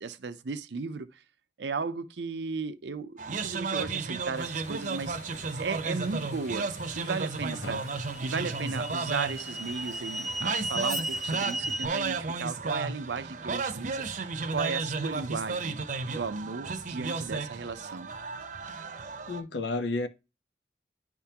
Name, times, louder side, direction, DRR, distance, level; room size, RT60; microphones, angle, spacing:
voice 1, 0.0-1.2 1.6-5.2 5.6-6.7 6.9-7.8 8.2-18.1, right 4 dB, 80° right, 0.6 m, -35 dB
sound 1, 3.2-19.4, right 4 dB, 45° right, 0.7 m, -34 dB
sound 2, 4.3-11.4, left 3 dB, 75° left, 1.1 m, -50 dB
sound 3, 6.9-7.0 7.8-11.9, right 2 dB, ahead, 0.4 m, -35 dB
voice 2, 7.5-7.8 19.3-20.1, left 2 dB, 90° left, 0.8 m, -32 dB
10.0 x 3.5 x 2.9 m
head